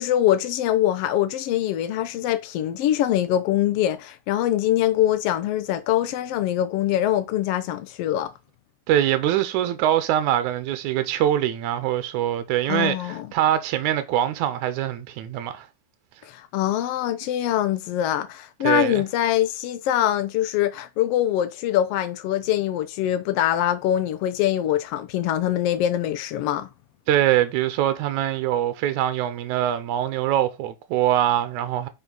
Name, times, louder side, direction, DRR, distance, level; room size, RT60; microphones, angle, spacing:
voice 1, 0.0-8.3 12.7-13.3 16.3-26.7, left 12 dB, 75° left, 1.4 m, -23 dB
voice 2, 8.9-15.7 18.6-19.0 27.1-31.9, right 12 dB, 85° right, 2.2 m, -23 dB
9.3 x 4.6 x 4.0 m
omnidirectional pair, 3.4 m